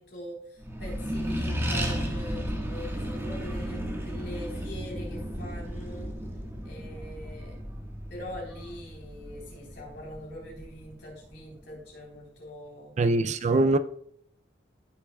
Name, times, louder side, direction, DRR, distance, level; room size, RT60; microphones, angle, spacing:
voice 1, 0.0-6.1 6.6-7.6 8.1-13.8, left 1 dB, 65° left, 3.8 m, -43 dB
Accelerating revving vroom, 0.6-11.5, equal, 15° right, 1.5 m, -34 dB
voice 2, 13.0-13.8, right 2 dB, 40° right, 0.4 m, -22 dB
14.5 x 6.7 x 2.3 m
head